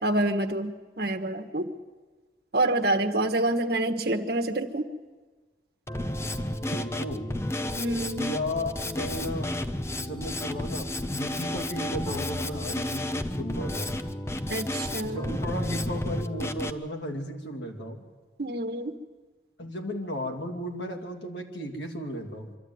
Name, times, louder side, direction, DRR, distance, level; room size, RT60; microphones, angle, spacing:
voice 1, 0.0-1.7 2.5-4.9 7.8-8.3 14.5-15.4 18.4-18.9, right 1 dB, 55° right, 5 dB, 1.3 m, -27 dB
Drum kit, 5.9-16.7, left 1 dB, 15° left, 0.6 m, -32 dB
voice 2, 6.7-7.3 8.1-9.5 10.0-14.0 15.0-18.0 19.6-22.5, equal, 75° left, 3 dB, 2.6 m, -35 dB
24.5 x 13.0 x 9.4 m, 1.3 s
head